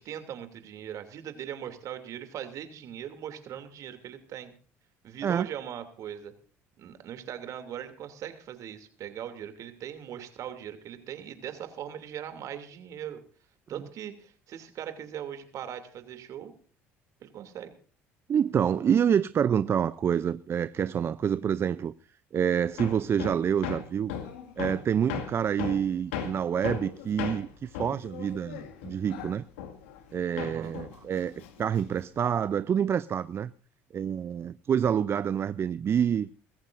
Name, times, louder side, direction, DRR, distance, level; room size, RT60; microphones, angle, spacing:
voice 1, 0.0-4.5 5.0-6.3 6.8-13.2 13.7-16.5 17.2-17.7 30.4-30.7, right 10 dB, 60° right, 2.8 m, -40 dB
voice 2, 18.3-21.9 22.3-24.1 24.6-29.4 30.1-33.5 33.9-36.3, right 8 dB, 40° right, 0.5 m, -27 dB
Hammer, 22.8-30.1 30.4-32.1, left 8 dB, 85° left, 2.0 m, -38 dB
23.0 x 14.5 x 2.6 m
hypercardioid pair, 75°, 6 cm